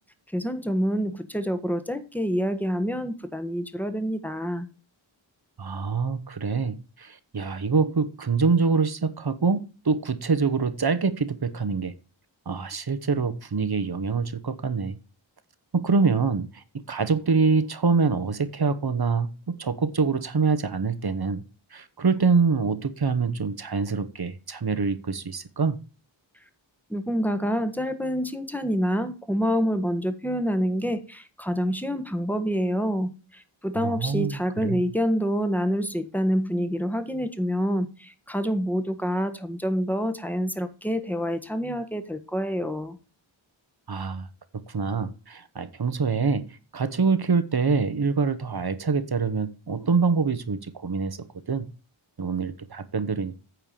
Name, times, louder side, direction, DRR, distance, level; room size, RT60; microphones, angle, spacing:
voice 1, 0.3-4.7 26.9-43.0, equal, 5° left, 1.3 m, -27 dB
voice 2, 5.6-11.9 12.5-15.0 15.7-16.6 16.9-21.4 21.7-25.8 33.8-34.8 43.9-44.3 44.7-46.5 46.7-51.2 51.5-51.7 52.2-53.4, right 4 dB, 50° right, 1.1 m, -25 dB
9.1 x 4.6 x 6.7 m
wide cardioid pair, 55°, 49 cm